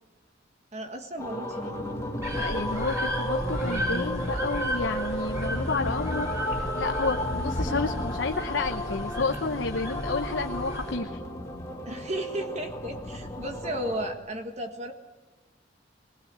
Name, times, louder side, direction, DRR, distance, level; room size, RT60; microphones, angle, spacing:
voice 1, 0.7-1.8 11.9-14.9, right 1 dB, 40° right, 5 dB, 1.7 m, -34 dB
sound 1, 1.2-14.1, left 1 dB, 15° left, 2.4 m, -33 dB
sound 2, 2.2-11.0, equal, 15° right, 4.4 m, -34 dB
voice 2, 2.4-6.3 6.8-11.2, left 4 dB, 80° left, 5 dB, 1.0 m, -30 dB
20.0 x 19.5 x 8.2 m, 1.2 s
head